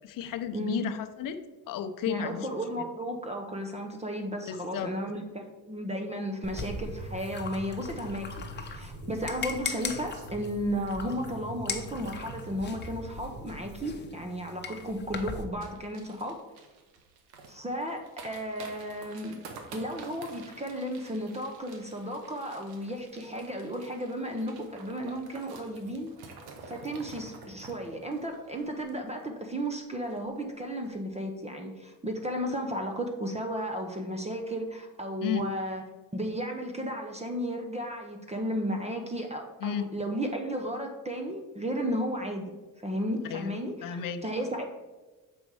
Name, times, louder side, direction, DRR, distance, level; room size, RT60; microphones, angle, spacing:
voice 1, 0.0-1.4 1.7-2.5 2.8-2.9 4.4-4.9 35.2-35.4 39.6-39.9 43.3-43.5 43.8-44.2, left 9 dB, 60° left, 8 dB, 0.7 m, -33 dB
voice 2, 0.5-0.8 2.1-8.3 8.6-16.4 17.5-19.4 19.7-26.1 26.7-35.8 36.1-42.5 42.8-44.6, equal, 15° right, 3 dB, 0.8 m, -34 dB
sound 1, 6.4-15.4, left 4 dB, 30° left, 0.9 m, -40 dB
sound 2, 6.6-13.9, equal, 55° right, 2.3 m, -43 dB
sound 3, 15.6-29.4 29.7-29.8 30.0-30.4 30.7-30.9, right 4 dB, 90° right, 1.1 m, -49 dB
6.8 x 5.2 x 4.7 m, 1.2 s
cardioid pair, 95°, 37 cm